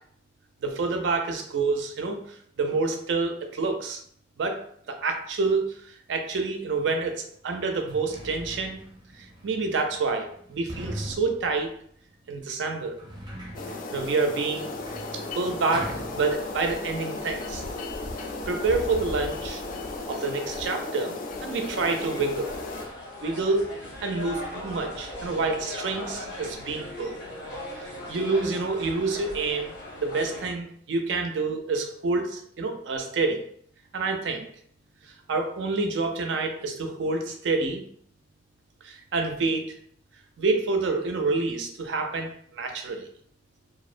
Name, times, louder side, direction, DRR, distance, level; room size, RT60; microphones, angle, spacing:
voice 1, 0.6-2.2 2.6-4.0 4.4-4.6 4.9-5.7 6.1-7.1 7.4-8.8 9.4-11.7 12.3-13.0 13.9-14.7 15.3-17.6 18.5-19.6 20.1-21.2 21.4-22.5 23.2-23.7 24.0-27.2 28.1-29.7 30.0-33.4 33.9-34.4 35.3-37.8 39.1-39.6 40.4-42.3 42.6-43.0, right 3 dB, 85° right, 5 dB, 0.4 m, -27 dB
Sliding door, 6.9-7.0 7.6-16.8 17.1-17.9, equal, 25° right, 0.6 m, -41 dB
sound 1, 13.5-22.8, left 2 dB, 50° left, 0.3 m, -35 dB
sound 2, 21.7-30.5, left 1 dB, 75° left, 0.8 m, -39 dB
2.5 x 2.0 x 2.4 m, 0.64 s
head